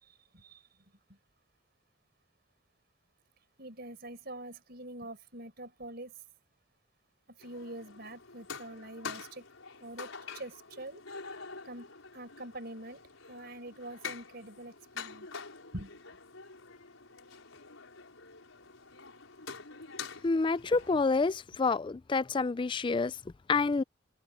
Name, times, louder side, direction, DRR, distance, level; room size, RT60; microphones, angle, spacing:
voice 1, 0.0-0.6 1.1-1.2 3.6-6.1 7.4-9.5 9.8-11.0 11.6-13.0 13.3-15.3 15.7-16.0, right 1 dB, 50° right, 5.0 m, -45 dB
sound 1, 7.4-21.0, left 5 dB, 90° left, 5.4 m, -46 dB
voice 2, 20.2-23.2 23.5-23.8, left 4 dB, 25° left, 0.3 m, -28 dB
head